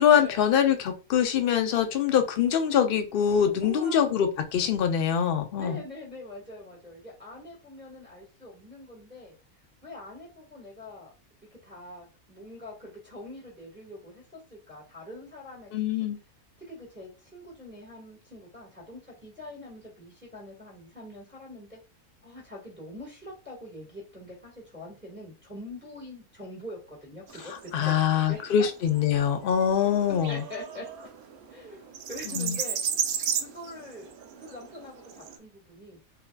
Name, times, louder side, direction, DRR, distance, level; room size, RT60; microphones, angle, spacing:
voice 1, 0.0-5.8 15.7-16.2 27.7-30.4 32.4-32.6, left 8 dB, 65° left, 7 dB, 0.5 m, -24 dB
voice 2, 3.6-4.2 5.6-9.3 9.8-11.1 11.5-15.7 16.7-21.8 22.2-28.4 29.8-30.9 31.5-32.8 33.4-34.1 34.4-36.0, left 1 dB, 10° right, -4 dB, 1.5 m, -44 dB
sound 1, 27.3-35.4, right 8 dB, 85° right, 1.1 m, -35 dB
3.7 x 2.7 x 2.2 m, 0.31 s
omnidirectional pair, 1.5 m